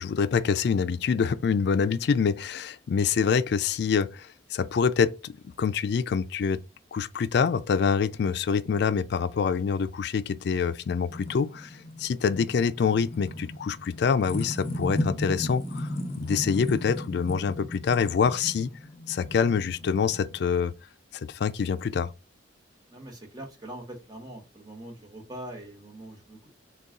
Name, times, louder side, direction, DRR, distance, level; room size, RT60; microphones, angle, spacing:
voice 1, 0.0-5.3 5.6-6.6 6.9-11.7 12.0-15.9 16.1-18.7 19.1-20.7 21.3-22.1, left 6 dB, 60° left, 0.3 m, -26 dB
sound 1, 10.8-20.6, left 1 dB, 35° left, 0.7 m, -35 dB
voice 2, 22.9-26.5, right 1 dB, 20° right, 1.0 m, -42 dB
3.9 x 2.3 x 3.7 m
head